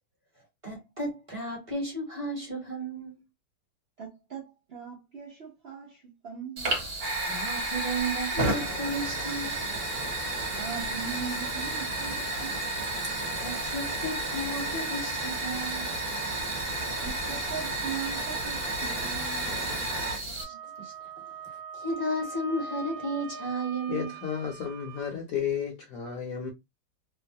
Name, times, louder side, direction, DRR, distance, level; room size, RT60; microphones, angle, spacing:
voice 1, 0.6-3.2 7.3-9.6 13.4-15.9 20.4-20.9 21.7-24.1, right 1 dB, 30° right, 0.7 m, -33 dB
voice 2, 4.0-6.7 10.5-12.6 17.0-19.8 20.3-20.6, right 7 dB, 85° right, 0.5 m, -40 dB
Fire, 6.6-20.4, right 2 dB, 50° right, 1.2 m, -31 dB
Wind instrument woodwind instrument, 20.4-25.1, right 4 dB, 70° right, 0.9 m, -41 dB
voice 3, 23.9-26.5, left 8 dB, 60° left, 0.9 m, -32 dB
3.0 x 2.1 x 2.6 m
omnidirectional pair, 2.0 m